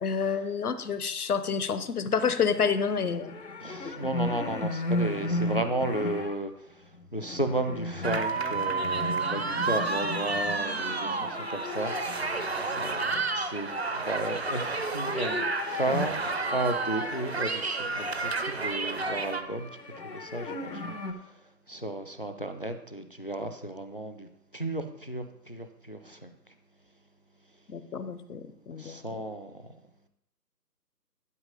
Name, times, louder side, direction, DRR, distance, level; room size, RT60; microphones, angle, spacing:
voice 1, 0.0-3.3 3.8-3.9 27.7-29.2, left 6 dB, 65° left, 12 dB, 0.8 m, -29 dB
sound 1, 2.5-6.4 6.9-18.4 18.8-21.1, left 2 dB, 85° left, 1.4 m, -36 dB
voice 2, 3.6-6.5 7.1-15.5 15.7-16.2 16.5-19.7 20.0-21.0 21.7-24.3 24.5-26.3 28.8-29.6, right 1 dB, 35° left, 8 dB, 0.4 m, -33 dB
sound 2, 8.0-19.4, right 3 dB, 40° right, 0.5 m, -31 dB
11.0 x 4.5 x 5.2 m, 0.77 s
figure-of-eight pair, 155°, 49 cm